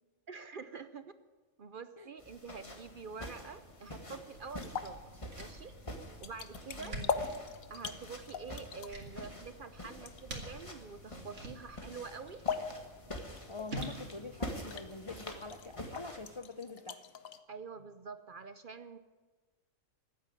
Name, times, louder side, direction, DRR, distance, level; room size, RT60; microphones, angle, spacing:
voice 1, 0.3-1.2 1.6-5.7 6.2-7.0 7.7-12.4 17.5-19.0, right 5 dB, 50° right, 11 dB, 0.7 m, -46 dB
sound 1, 2.2-16.4, left 1 dB, 25° left, 1.7 m, -47 dB
sound 2, 3.0-17.4, left 6 dB, 80° left, 1.3 m, -44 dB
sound 3, 4.3-15.5, right 1 dB, 80° right, 2.7 m, -49 dB
voice 2, 6.8-7.1 13.5-17.0, left 3 dB, 40° left, 8 dB, 0.4 m, -45 dB
15.0 x 9.6 x 9.9 m, 1.4 s
omnidirectional pair, 1.4 m